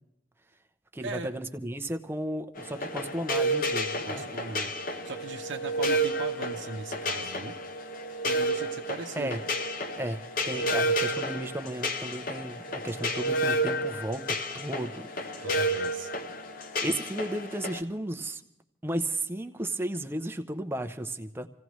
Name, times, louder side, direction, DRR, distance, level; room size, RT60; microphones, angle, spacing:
voice 1, 0.9-4.2 9.2-9.4 10.0-14.3 14.5-15.4 16.8-18.4 18.8-21.5, right 1 dB, 10° right, 7 dB, 0.6 m, -34 dB
sound 1, 2.6-17.8, right 1 dB, 45° left, 0.8 m, -31 dB
voice 2, 4.1-7.5 8.2-9.4 15.4-16.1, right 3 dB, 70° right, 4 dB, 0.8 m, -39 dB
27.0 x 16.0 x 3.1 m, 0.87 s
head